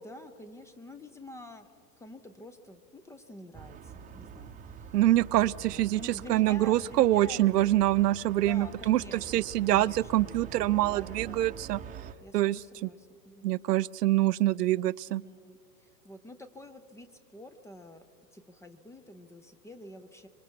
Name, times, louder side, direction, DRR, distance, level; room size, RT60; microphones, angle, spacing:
voice 1, 0.0-1.7 2.0-4.9 5.6-7.6 8.3-9.3 9.6-11.6 12.2-13.6 15.1-18.1 18.3-20.3, left 1 dB, 5° left, 9 dB, 0.5 m, -48 dB
sound 1, 3.5-12.1, right 8 dB, 15° right, 0.8 m, -45 dB
voice 2, 4.9-9.0 9.3-11.8 12.3-12.9 13.4-15.2, right 15 dB, 75° right, 17 dB, 0.6 m, -25 dB
26.0 x 23.5 x 4.6 m, 2.4 s
hypercardioid pair, 110°, 49 cm